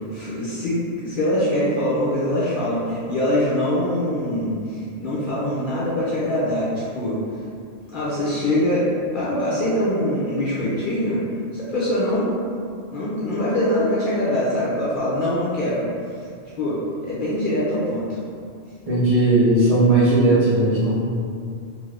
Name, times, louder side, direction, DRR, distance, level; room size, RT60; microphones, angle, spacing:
voice 1, 0.0-7.2 7.9-8.9 9.1-11.2 11.5-12.3 12.9-15.8 16.6-18.1, left 1 dB, 55° left, -8 dB, 0.7 m, -23 dB
voice 2, 18.8-20.9, right 2 dB, 35° right, -12 dB, 1.0 m, -17 dB
2.7 x 2.5 x 3.3 m, 2.3 s
omnidirectional pair, 1.1 m